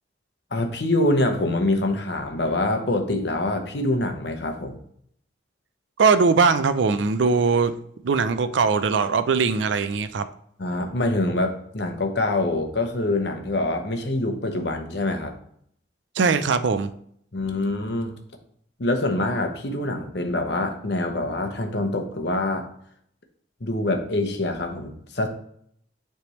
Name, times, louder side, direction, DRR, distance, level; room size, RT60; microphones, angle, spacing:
voice 1, 0.5-4.8 10.6-15.3 17.3-18.2 18.8-22.7 23.6-25.3, left 2 dB, 60° left, 4 dB, 0.9 m, -25 dB
voice 2, 6.0-7.7 8.0-10.2 16.2-16.9, right 4 dB, 70° right, 12 dB, 0.4 m, -20 dB
9.7 x 3.4 x 3.1 m, 0.67 s
head